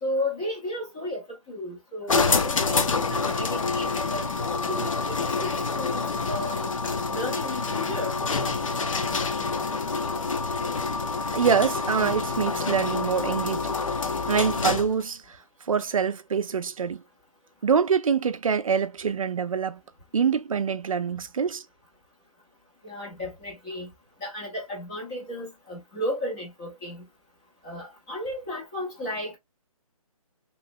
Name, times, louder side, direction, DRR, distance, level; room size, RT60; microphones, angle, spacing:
voice 1, 0.0-6.7 7.1-8.2 22.8-23.9 24.2-27.0 27.6-29.4, left 1 dB, 10° left, 0.5 m, -34 dB
sound 1, 2.1-15.0, left 4 dB, 60° left, 0.6 m, -27 dB
voice 2, 11.3-13.7 14.3-15.4 15.6-17.0 17.6-19.8 20.1-21.6, right 6 dB, 65° right, 0.4 m, -25 dB
3.1 x 3.0 x 2.5 m
hypercardioid pair, 170°, 19 cm